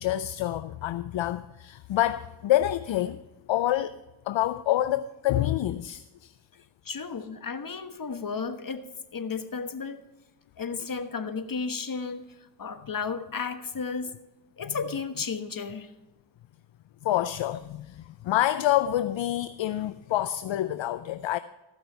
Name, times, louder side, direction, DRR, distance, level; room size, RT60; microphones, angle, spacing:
voice 1, 0.0-3.2 3.5-4.0 4.3-6.3 14.7-14.8 17.0-21.4, left 13 dB, 65° left, 0.5 m, -27 dB
voice 2, 6.8-8.8 9.1-10.0 10.6-12.3 12.6-14.1 14.6-15.9, left 5 dB, 40° left, 1.2 m, -33 dB
15.0 x 6.0 x 5.6 m
cardioid pair, 50°, 50 cm